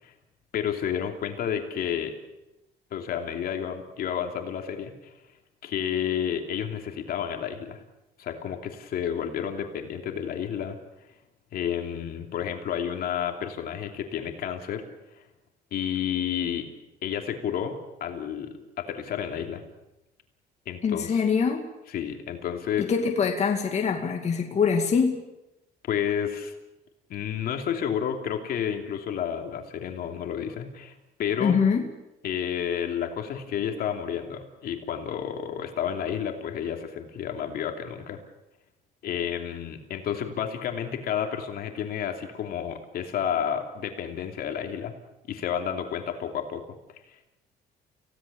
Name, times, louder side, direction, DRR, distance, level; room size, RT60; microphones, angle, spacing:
voice 1, 0.5-2.1 2.9-5.1 5.6-7.8 8.2-10.8 11.5-14.8 15.7-16.7 17.0-19.6 20.7-21.2 21.9-22.9 25.9-26.5 27.1-31.6 32.2-38.2 39.0-44.9 45.3-46.6 47.1-47.2, left 8 dB, 65° left, 4 dB, 3.0 m, -31 dB
voice 2, 20.8-21.7 22.8-25.2 31.4-31.9, left 6 dB, 40° left, 3 dB, 2.4 m, -24 dB
29.0 x 17.0 x 7.1 m, 0.95 s
cardioid pair, 110°, 17 cm